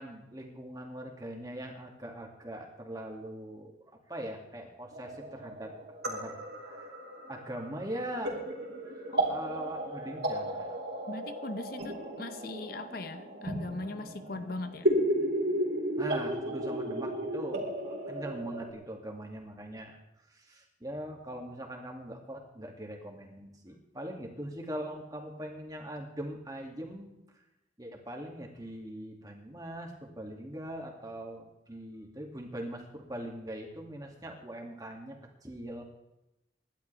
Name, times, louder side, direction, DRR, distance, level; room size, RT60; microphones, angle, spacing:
voice 1, 0.0-3.8 4.1-5.7 6.0-6.4 6.6-6.9 7.2-8.4 8.8-11.2 16.0-20.0 20.3-27.1 27.8-35.8, right 1 dB, 20° right, 1 dB, 2.3 m, -41 dB
sound 1, 4.9-18.7, right 1 dB, 60° right, 2.9 m, -34 dB
voice 2, 11.1-14.9, left 2 dB, 50° left, 10 dB, 0.8 m, -39 dB
25.5 x 12.0 x 3.4 m, 0.92 s
head